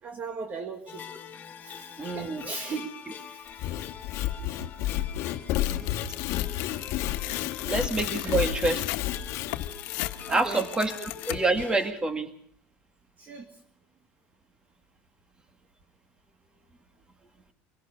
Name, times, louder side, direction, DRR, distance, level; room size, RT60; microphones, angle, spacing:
voice 1, 0.0-1.0 1.6-3.7 5.8-6.0 6.5-6.8 7.6-7.8 8.2-8.5 10.3-10.7 13.2-13.6, right 4 dB, 30° right, 6 dB, 1.7 m, -39 dB
sound 1, 0.9-11.9, left 8 dB, 30° left, 2.7 m, -44 dB
voice 2, 2.0-2.4 7.7-8.8 10.3-12.3, right 2 dB, 15° right, 8 dB, 2.1 m, -27 dB
Sawing / Wood, 3.5-9.7, left 13 dB, 55° left, 1.6 m, -31 dB
Tearing, 5.5-11.7, left 17 dB, 75° left, 1.5 m, -37 dB
25.0 x 18.0 x 6.7 m, 0.62 s
cardioid pair, 150°, 6 cm